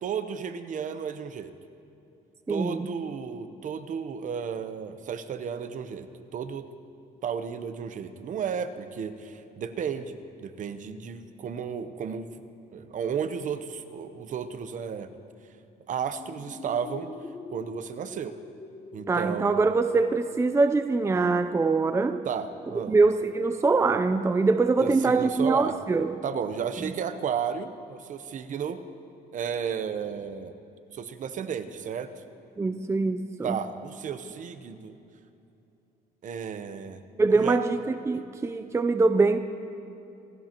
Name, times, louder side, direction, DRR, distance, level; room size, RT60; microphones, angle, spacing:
voice 1, 0.0-1.5 2.5-6.7 7.2-12.3 12.7-15.1 15.9-17.1 17.5-18.3 18.9-19.6 22.3-22.9 24.8-25.7 26.2-28.8 29.3-30.6 30.9-32.1 33.4-35.0 36.2-37.0 37.3-37.6, right 7 dB, 50° right, 10 dB, 0.9 m, -33 dB
voice 2, 2.5-2.9 19.1-22.2 22.9-26.1 26.8-26.9 32.6-33.6 37.2-39.4, right 3 dB, 15° right, 9 dB, 0.5 m, -23 dB
sound 1, 16.0-21.4, left 3 dB, 30° left, 1.4 m, -45 dB
27.5 x 14.0 x 3.0 m, 2.8 s
cardioid pair, 110°, 17 cm